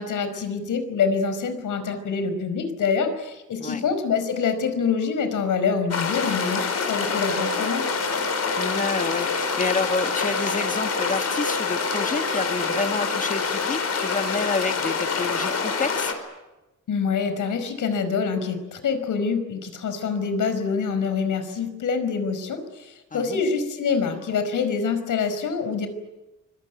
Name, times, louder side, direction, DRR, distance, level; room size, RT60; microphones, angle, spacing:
voice 1, 0.0-7.9 16.9-25.9, left 5 dB, 90° left, 9 dB, 4.9 m, -26 dB
sound 1, 5.9-16.1, left 5 dB, 55° left, 4.7 m, -26 dB
sound 2, 7.3-13.1, right 2 dB, 10° right, 5.4 m, -36 dB
voice 2, 8.6-16.1 23.1-23.4, left 4 dB, 25° left, 8 dB, 1.6 m, -29 dB
25.0 x 24.0 x 9.4 m, 1.1 s
wide cardioid pair, 170°, 30 cm